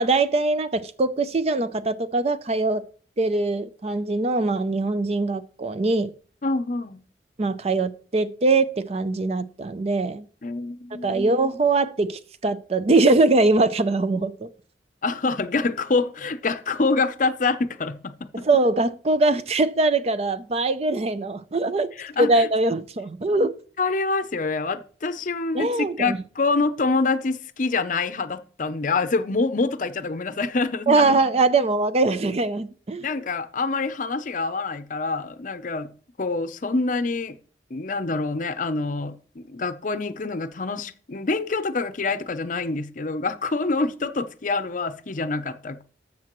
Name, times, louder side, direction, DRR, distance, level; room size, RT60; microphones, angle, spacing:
voice 1, 0.0-2.9 3.2-6.1 7.4-10.3 11.0-14.5 18.4-21.9 22.2-23.5 25.5-26.2 30.9-33.1, right 3 dB, 35° right, 0.5 m, -22 dB
voice 2, 6.4-7.0 10.4-11.3 15.0-18.5 22.0-22.5 23.4-23.5 23.8-31.2 33.0-35.9 36.2-37.4 37.7-45.8, left 3 dB, 45° left, 0.6 m, -26 dB
13.5 x 7.3 x 3.0 m
head